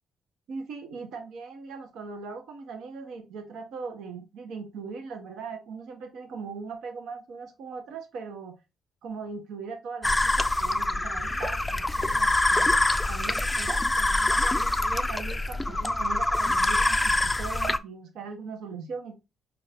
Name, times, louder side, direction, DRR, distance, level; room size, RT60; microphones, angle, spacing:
voice 1, 0.5-8.5 9.0-12.7 13.1-19.1, right 5 dB, 80° right, 0.8 m, -39 dB
sound 1, 10.0-17.8, left 2 dB, 10° left, 0.3 m, -25 dB
4.6 x 2.5 x 3.3 m
cardioid pair, 90°, 0 cm